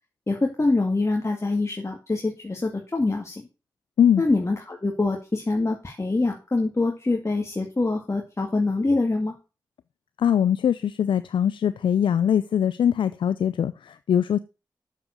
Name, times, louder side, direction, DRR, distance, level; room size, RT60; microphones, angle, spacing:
voice 1, 0.3-3.5 4.2-9.3, left 3 dB, 35° left, 2.1 m, -25 dB
voice 2, 10.2-14.4, left 9 dB, 80° left, 0.4 m, -22 dB
7.3 x 7.3 x 6.6 m
cardioid pair, 40°, 8 cm